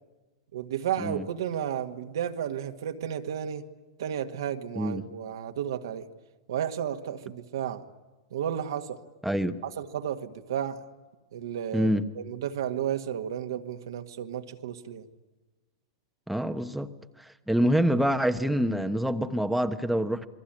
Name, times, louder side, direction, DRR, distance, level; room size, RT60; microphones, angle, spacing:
voice 1, 0.5-3.7 4.0-6.1 6.5-7.8 8.3-9.0 9.6-10.8 11.3-11.9 12.1-15.1, right 9 dB, 75° right, 1.8 m, -32 dB
voice 2, 4.8-5.1 9.2-9.6 11.7-12.1 16.3-16.9 17.2-20.3, equal, ahead, 1.2 m, -26 dB
28.0 x 21.5 x 9.0 m
hypercardioid pair, 110°, 2 cm